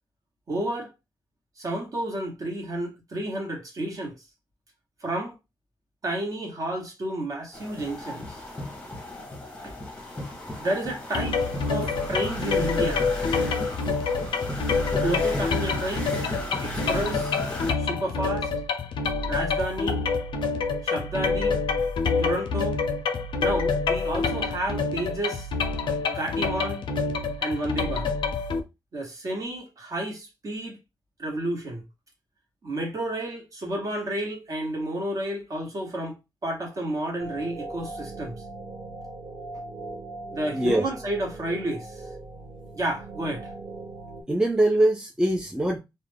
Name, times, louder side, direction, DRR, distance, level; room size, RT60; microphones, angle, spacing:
voice 1, 0.5-0.9 1.6-4.2 5.0-5.3 6.0-8.4 9.6-9.7 10.6-11.4 11.7-13.0 15.0-16.3 16.6-17.4 17.8-18.5 19.3-20.0 20.8-21.6 22.2-22.8 23.4-25.5 26.1-26.8 27.4-28.1 28.9-30.8 31.2-31.8 32.6-36.2 36.4-38.4 40.3-42.0 42.7-43.5, right 1 dB, 45° right, 1.0 m, -31 dB
sound 1, 7.5-17.7, left 1 dB, 15° left, 0.8 m, -35 dB
sound 2, 11.1-28.6, left 4 dB, 80° left, 0.5 m, -27 dB
sound 3, 37.2-44.2, right 2 dB, 85° right, 0.8 m, -40 dB
voice 2, 40.5-40.8 44.3-45.8, right 1 dB, 10° right, 0.4 m, -22 dB
2.4 x 2.1 x 3.3 m
wide cardioid pair, 140°, 8 cm